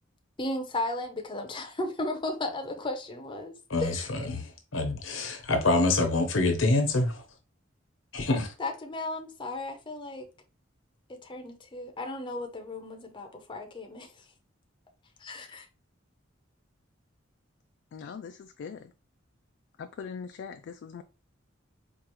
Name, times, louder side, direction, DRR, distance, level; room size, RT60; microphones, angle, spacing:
voice 1, 0.4-3.5 3.8-4.1 8.6-10.3 11.1-14.2 15.2-15.7, left 2 dB, 25° left, 0.6 m, -35 dB
voice 2, 3.7-7.2 8.1-8.5, left 2 dB, 90° left, 0.9 m, -26 dB
voice 3, 17.9-18.9 19.8-21.0, left 6 dB, 60° left, 0.3 m, -41 dB
4.6 x 2.4 x 3.0 m
head